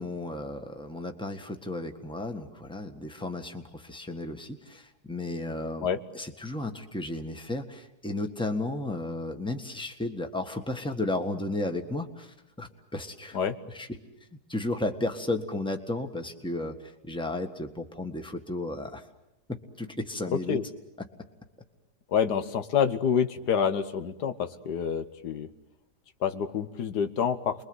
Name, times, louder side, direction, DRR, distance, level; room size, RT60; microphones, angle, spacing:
voice 1, 0.0-5.9 6.1-13.4 13.7-14.0 14.5-19.0 19.5-20.6, left 2 dB, 5° left, 5 dB, 1.5 m, -34 dB
voice 2, 22.1-25.5 26.2-27.6, left 7 dB, 90° left, 8 dB, 1.8 m, -27 dB
30.0 x 22.0 x 8.0 m, 0.89 s
omnidirectional pair, 1.7 m